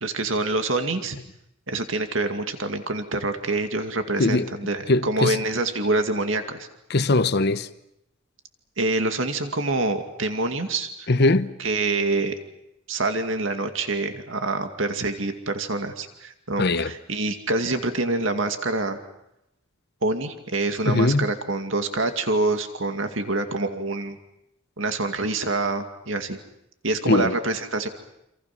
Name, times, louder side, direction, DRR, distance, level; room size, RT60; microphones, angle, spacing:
voice 1, 0.0-1.2 1.7-6.7 8.8-11.1 11.6-12.4 12.9-19.0 20.0-24.2 24.8-26.4 26.8-27.9, right 2 dB, 70° right, 2.3 m, -26 dB
voice 2, 4.2-4.5 4.9-5.4 6.9-7.7 11.1-11.5 16.6-16.9 20.9-21.3 27.1-27.4, left 2 dB, 55° left, 1.0 m, -21 dB
28.5 x 27.5 x 6.0 m
head